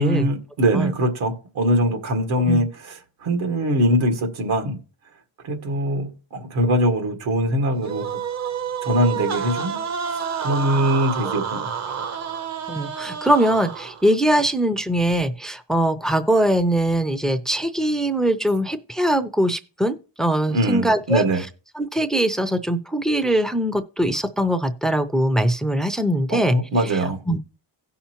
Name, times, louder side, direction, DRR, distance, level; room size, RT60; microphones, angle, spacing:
voice 1, 0.0-4.8 5.4-8.2 8.8-9.8 10.4-12.0 20.5-21.4 26.3-27.2, equal, 85° right, 1.9 m, -22 dB
sound 1, 7.8-14.2, right 7 dB, 35° right, 0.6 m, -29 dB
voice 2, 12.7-21.2 21.8-26.6 27.3-27.4, right 1 dB, ahead, 0.4 m, -21 dB
17.0 x 5.7 x 2.9 m
cardioid pair, 150°, 47 cm